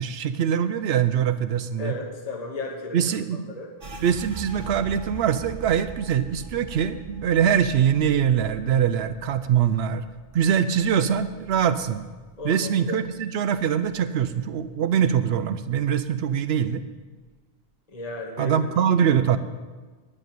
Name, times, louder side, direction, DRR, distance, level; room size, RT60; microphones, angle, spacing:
voice 1, 0.0-2.0 2.9-3.5 4.0-10.0 10.3-12.1 12.4-16.8 18.4-19.4, right 8 dB, 80° right, 11 dB, 0.8 m, -23 dB
voice 2, 1.8-3.0 3.5-3.7 12.4-13.0 17.9-18.9, left 3 dB, 40° left, 1 dB, 1.3 m, -34 dB
sound 1, 3.8-13.2 13.5-14.7 15.1-15.5 16.0-16.6, right 3 dB, 55° right, 1.0 m, -43 dB
11.0 x 6.5 x 9.1 m, 1.4 s
omnidirectional pair, 1.0 m